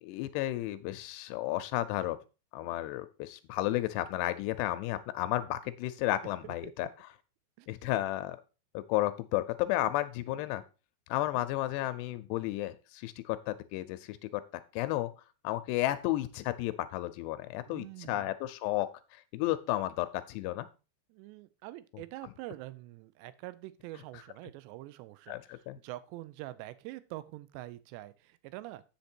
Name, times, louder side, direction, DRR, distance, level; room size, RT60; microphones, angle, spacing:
voice 1, 0.0-2.2 2.5-6.9 7.7-8.4 8.7-10.6 11.1-14.4 14.7-15.1 15.4-20.7 25.3-25.8, left 15 dB, 85° left, 11 dB, 2.4 m, -33 dB
voice 2, 6.4-6.9 7.6-8.1 11.3-11.5 17.7-18.3 21.1-28.8, right 17 dB, 80° right, 15 dB, 2.7 m, -45 dB
8.2 x 6.6 x 4.4 m, 0.32 s
omnidirectional pair, 5.3 m